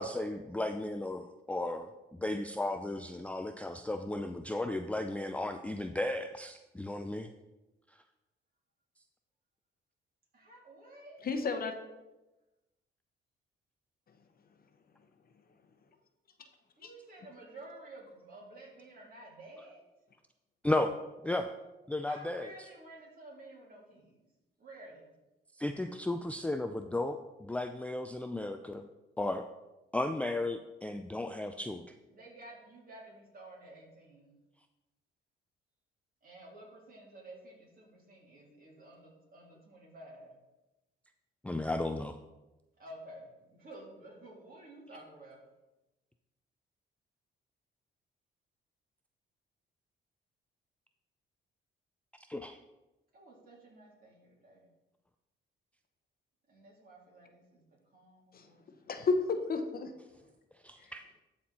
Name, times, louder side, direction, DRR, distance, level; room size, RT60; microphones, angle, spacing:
voice 1, 0.0-1.9 2.2-7.3 20.6-20.9 21.2-21.5 21.9-22.5 25.6-28.8 29.2-29.4 29.9-31.8 41.4-42.2 52.3-52.6 60.6-61.0, left 2 dB, 5° left, 7 dB, 0.4 m, -34 dB
voice 2, 10.3-11.3 16.8-19.8 22.1-24.2 24.6-25.1 32.1-34.3 36.2-40.3 42.8-45.4 53.1-54.7 56.5-57.6 57.9-58.6, right 1 dB, 50° right, -3 dB, 3.3 m, -52 dB
voice 3, 11.2-11.8 14.1-14.2 16.8-16.9 58.3-58.5 58.9-59.9 60.8-60.9, left 4 dB, 50° left, 7 dB, 0.9 m, -32 dB
12.5 x 4.4 x 4.2 m, 1.0 s
cardioid pair, 90°, 20 cm